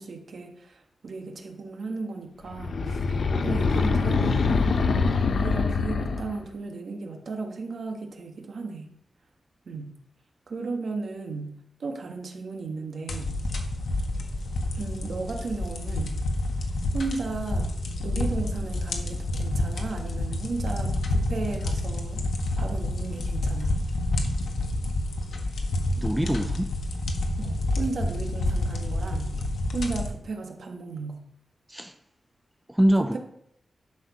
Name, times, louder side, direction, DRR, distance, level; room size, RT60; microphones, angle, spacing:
voice 1, 0.0-3.0 3.4-8.9 9.6-9.9 10.5-13.3 14.8-16.1 16.9-17.7 18.0-22.2 22.6-23.8 27.4-29.4 29.7-31.2 33.0-33.2, right 3 dB, 55° right, 1.6 m, -35 dB
sound 1, 2.5-6.4, left 4 dB, 60° left, 0.8 m, -24 dB
sound 2, 13.1-30.1, left 1 dB, 75° left, 1.6 m, -28 dB
voice 2, 26.0-26.7 31.7-32.0 32.7-33.2, right 1 dB, 5° right, 0.5 m, -24 dB
11.5 x 6.4 x 5.0 m
wide cardioid pair, 165°, 0 cm